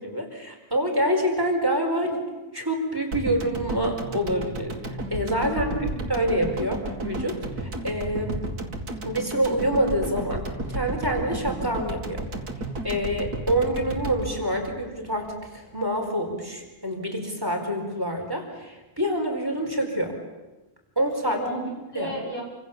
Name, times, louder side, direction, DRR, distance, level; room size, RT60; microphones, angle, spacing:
voice 1, 0.0-2.2 2.5-5.7 6.1-8.5 9.0-12.3 12.8-20.2 21.0-21.4 21.9-22.1, equal, 15° right, 2 dB, 4.7 m, -27 dB
sound 1, 3.1-15.4 15.7-15.8, right 1 dB, 85° right, 3.0 m, -33 dB
voice 2, 5.4-6.0 21.2-22.4, right 1 dB, 90° left, -2 dB, 6.5 m, -32 dB
28.0 x 25.5 x 7.4 m, 1.1 s
omnidirectional pair, 1.6 m